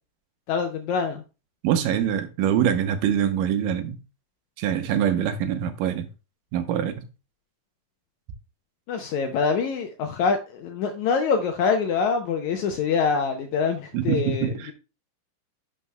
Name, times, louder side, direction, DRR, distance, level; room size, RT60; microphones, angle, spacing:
voice 1, 0.5-1.2 8.9-14.7, left 5 dB, 80° left, 1.8 m, -25 dB
voice 2, 1.6-4.0 4.6-6.1 6.5-7.1 13.9-14.7, right 9 dB, 80° right, 2.3 m, -24 dB
11.0 x 6.2 x 2.2 m
omnidirectional pair, 4.0 m